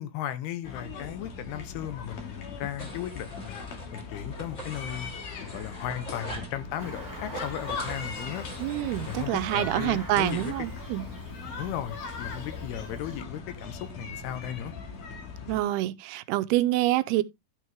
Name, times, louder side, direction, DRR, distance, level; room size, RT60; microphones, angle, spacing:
voice 1, 0.0-3.6 3.9-5.1 5.4-8.5 9.1-10.5 11.6-14.7, left 11 dB, 85° left, 2.9 m, -36 dB
sound 1, 0.6-15.6, left 4 dB, 55° left, 3.4 m, -40 dB
sound 2, 2.8-4.0 4.3-6.6 7.2-10.5, right 1 dB, 20° left, 2.6 m, -43 dB
sound 3, 6.8-13.2, equal, 10° right, 1.4 m, -44 dB
voice 2, 8.6-11.1 15.5-17.2, right 15 dB, 85° right, 2.6 m, -26 dB
12.0 x 6.2 x 3.4 m
omnidirectional pair, 4.6 m